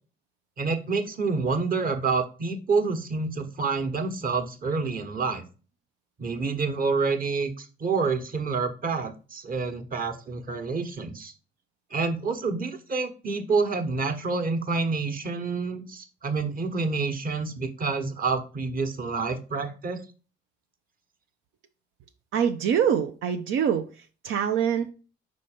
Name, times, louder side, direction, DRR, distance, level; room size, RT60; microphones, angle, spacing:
voice 1, 0.6-5.4 6.2-11.3 11.9-20.0, right 4 dB, 45° right, 7 dB, 1.2 m, -28 dB
voice 2, 22.3-23.8 24.2-24.9, right 8 dB, 85° right, 6 dB, 0.6 m, -24 dB
5.4 x 4.1 x 5.0 m, 0.35 s
cardioid pair, 90°, 20 cm